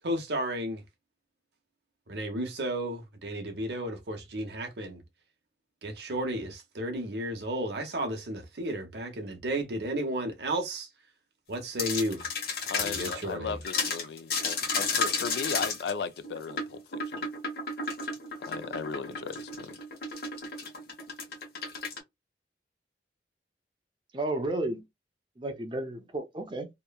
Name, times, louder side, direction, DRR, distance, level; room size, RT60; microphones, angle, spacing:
voice 1, 0.0-0.8 2.1-5.0 5.8-10.9 11.5-12.3 12.8-13.5, right 1 dB, 70° right, 0.8 m, -33 dB
sound 1, 11.8-13.2 13.6-22.0, left 4 dB, 55° left, 1.1 m, -32 dB
voice 2, 12.7-17.2 18.4-19.8, left 5 dB, 70° left, 0.3 m, -36 dB
voice 3, 24.1-24.8 25.4-26.7, right 2 dB, 25° right, 0.6 m, -32 dB
2.9 x 2.1 x 2.2 m
head